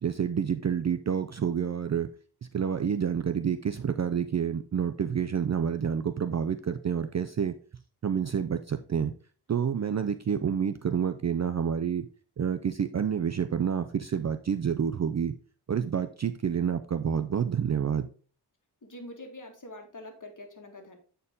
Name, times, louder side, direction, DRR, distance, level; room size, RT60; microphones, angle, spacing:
voice 1, 0.0-2.1 2.5-7.5 8.0-9.1 9.5-12.1 12.4-15.4 15.7-18.1, right 7 dB, 45° right, 9 dB, 0.4 m, -28 dB
voice 2, 18.8-21.0, left 1 dB, 50° left, 4 dB, 1.7 m, -45 dB
8.1 x 4.5 x 3.6 m, 0.40 s
wide cardioid pair, 65°, 41 cm